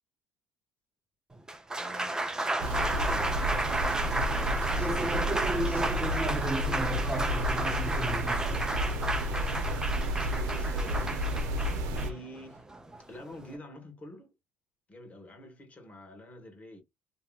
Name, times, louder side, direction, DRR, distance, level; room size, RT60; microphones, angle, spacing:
Applause, 1.3-13.6, right 2 dB, 10° right, 0.5 m, -32 dB
voice 1, 1.8-11.2 11.7-12.6 13.1-14.3 14.9-16.8, left 1 dB, 25° left, 1.3 m, -48 dB
sound 1, 2.6-12.1, equal, 80° right, 0.7 m, -31 dB
2.9 x 2.8 x 2.3 m
cardioid pair, 115°, 6 cm